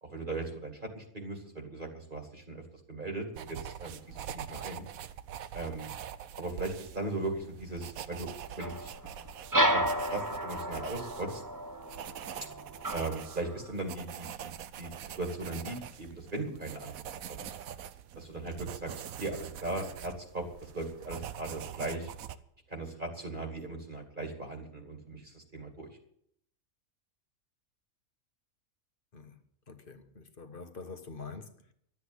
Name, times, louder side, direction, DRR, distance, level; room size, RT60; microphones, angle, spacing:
voice 1, 0.0-2.6 2.9-4.8 5.5-5.9 6.4-8.3 8.6-8.9 9.7-9.8 10.1-11.4 12.9-14.5 14.8-16.9 17.3-17.5 18.1-18.9 19.2-20.4 20.7-22.1 22.7-25.9, right 2 dB, 35° right, 2.5 m, -38 dB
sound 1, 3.3-22.4, right 9 dB, 75° right, 1.2 m, -44 dB
sound 2, 8.6-13.7, right 1 dB, 20° right, 0.7 m, -32 dB
voice 2, 29.1-31.7, left 4 dB, 40° left, 1.3 m, -46 dB
12.5 x 8.4 x 9.7 m
omnidirectional pair, 1.5 m